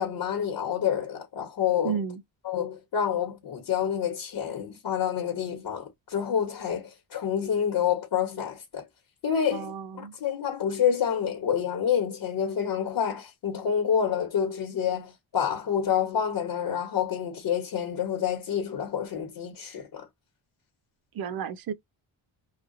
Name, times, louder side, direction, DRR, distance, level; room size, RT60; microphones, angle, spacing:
voice 1, 0.0-2.0 2.4-8.8 9.2-20.0, left 8 dB, 55° left, 1.3 m, -28 dB
voice 2, 1.8-2.2 9.5-10.1 21.1-21.7, right 7 dB, 50° right, 0.6 m, -32 dB
3.0 x 2.4 x 2.6 m
cardioid pair, 125°, 46 cm